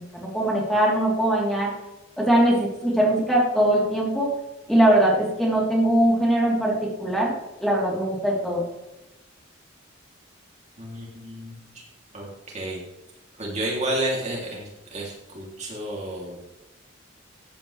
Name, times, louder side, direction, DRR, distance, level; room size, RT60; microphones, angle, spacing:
voice 1, 0.0-1.7 2.2-4.3 4.7-7.3 7.6-8.6, right 1 dB, ahead, -4 dB, 3.6 m, -21 dB
voice 2, 10.8-11.8 12.1-12.8 13.4-16.4, right 1 dB, 35° right, -3 dB, 3.0 m, -31 dB
15.0 x 9.3 x 3.4 m, 0.97 s
head